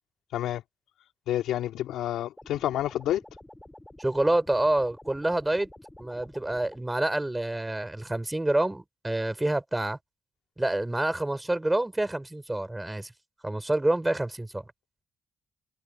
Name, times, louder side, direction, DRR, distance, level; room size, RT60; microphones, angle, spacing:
voice 1, 1.3-3.2, left 12 dB, 85° left, 2.8 m, -29 dB
sound 1, 2.4-6.8, left 1 dB, 10° left, 7.1 m, -49 dB
voice 2, 4.0-5.7 6.0-10.0 10.6-13.1 13.4-14.6, right 1 dB, 10° right, 4.8 m, -27 dB
cardioid pair, 90°, 0 cm